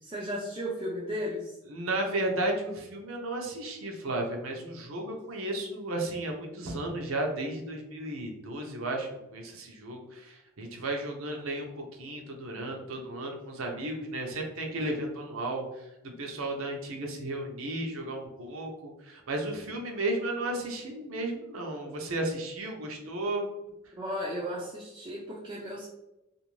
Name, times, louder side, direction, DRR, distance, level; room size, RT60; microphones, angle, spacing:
voice 1, 0.0-1.5 24.0-25.9, equal, 25° right, -5 dB, 0.4 m, -35 dB
voice 2, 1.7-23.5, right 1 dB, 85° right, 2 dB, 0.7 m, -34 dB
2.5 x 2.5 x 3.0 m, 0.92 s
head